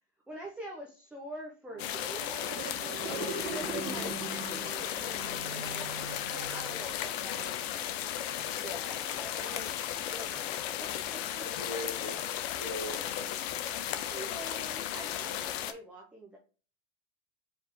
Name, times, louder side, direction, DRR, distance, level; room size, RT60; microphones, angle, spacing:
voice 1, 0.3-2.5 3.2-7.6 8.3-9.7 10.1-11.5 13.6-16.4, right 1 dB, 5° right, -2 dB, 0.5 m, -45 dB
sound 1, 1.7-7.1, right 6 dB, 50° right, 1.1 m, -41 dB
sound 2, 1.8-15.7, left 11 dB, 60° left, 0.6 m, -35 dB
voice 2, 3.0-3.6 11.4-12.2 12.6-13.0, left 1 dB, 20° left, 3 dB, 1.2 m, -39 dB
4.7 x 3.4 x 3.0 m, 0.36 s
supercardioid pair, 150°, 36 cm